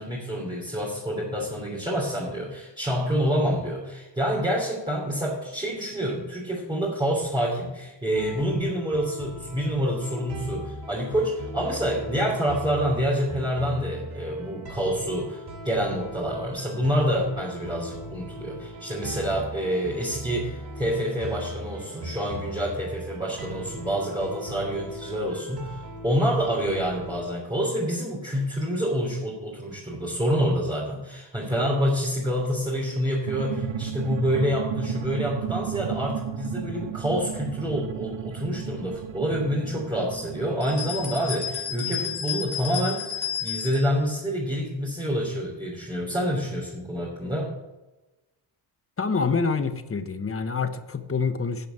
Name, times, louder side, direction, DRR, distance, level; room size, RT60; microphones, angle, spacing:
voice 1, 0.0-47.5, equal, 10° right, -4 dB, 3.2 m, -27 dB
sound 1, 8.1-27.3, equal, 55° right, 2.9 m, -39 dB
sound 2, 33.3-42.5, right 8 dB, 85° right, 1.0 m, -34 dB
sound 3, 40.6-43.9, left 8 dB, 55° left, 3.0 m, -32 dB
voice 2, 49.0-51.7, left 5 dB, 30° left, 10 dB, 1.1 m, -26 dB
11.0 x 5.1 x 8.2 m, 1.1 s
cardioid pair, 80°, 47 cm